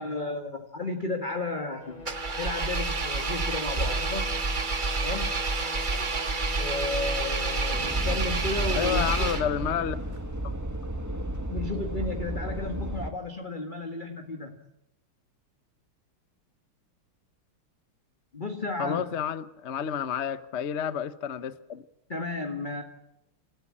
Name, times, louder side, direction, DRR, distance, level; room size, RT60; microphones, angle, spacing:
voice 1, 0.0-2.1 2.4-4.4 5.0-5.4 6.6-9.4 11.5-14.6 18.3-19.1 22.1-22.8, left 2 dB, 25° left, 1.6 m, -33 dB
sound 1, 1.8-8.9 10.1-10.2, left 5 dB, 85° left, 4.2 m, -43 dB
Engine, 2.0-9.8, right 3 dB, 30° right, 0.9 m, -29 dB
sound 2, 7.7-13.1, right 1 dB, 10° right, 1.7 m, -33 dB
voice 2, 8.7-10.0 18.8-21.8, left 8 dB, 50° left, 0.8 m, -30 dB
29.0 x 14.5 x 8.7 m
omnidirectional pair, 2.4 m